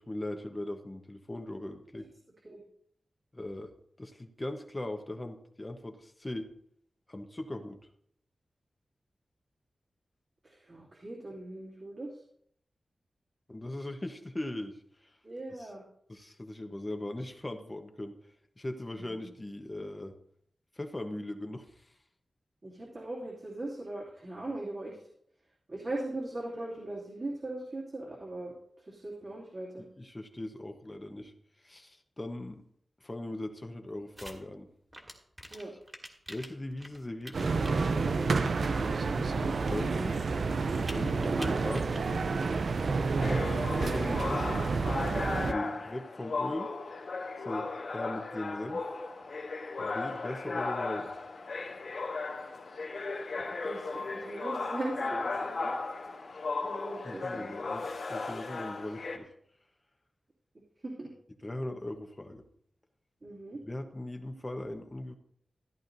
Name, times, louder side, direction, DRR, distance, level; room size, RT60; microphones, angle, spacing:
voice 1, 0.0-2.1 3.3-3.7 4.0-6.5 7.1-7.8 13.5-15.1 16.1-18.2 18.6-20.1 20.8-21.9 29.8-31.3 31.6-32.6 33.0-34.7 36.3-37.6 37.9-40.2 40.8-42.3 43.2-44.6 45.5-46.7 47.4-48.8 49.8-51.1 57.0-59.3 61.4-62.4 63.7-65.2, left 1 dB, 25° left, 6 dB, 1.1 m, -39 dB
voice 2, 10.4-12.2 15.2-15.8 19.0-19.3 22.6-25.0 25.7-29.9 35.5-35.7 53.6-55.7 56.6-57.5 60.8-61.1 63.2-63.6, right 2 dB, 50° right, -5 dB, 2.6 m, -39 dB
sound 1, 34.2-34.4 34.9-37.8 38.3-38.5 38.8-40.1 40.6-42.0 42.3-42.5, equal, 15° right, 2.1 m, -46 dB
sound 2, 37.3-45.5, right 4 dB, 75° right, 0.6 m, -29 dB
sound 3, 43.2-59.2, left 3 dB, 85° left, 2.2 m, -36 dB
14.5 x 11.0 x 2.7 m, 0.69 s
wide cardioid pair, 80°, 0 cm